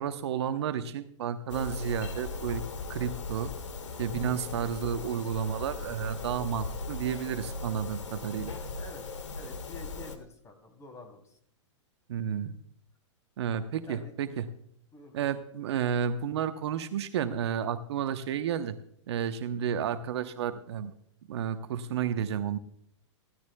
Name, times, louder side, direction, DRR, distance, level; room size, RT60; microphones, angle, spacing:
voice 1, 0.0-2.6 2.9-3.5 4.0-8.5 12.1-12.5 13.4-14.5 15.1-18.7 19.1-20.9 21.3-22.6, right 8 dB, 60° right, 10 dB, 0.9 m, -31 dB
sound 1, 1.5-10.2, left 3 dB, 75° left, 1.6 m, -38 dB
voice 2, 8.8-11.4 13.8-14.4 14.9-15.3, left 3 dB, 20° left, 5 dB, 3.0 m, -48 dB
15.5 x 13.5 x 2.3 m, 0.67 s
hypercardioid pair, 110°, 16 cm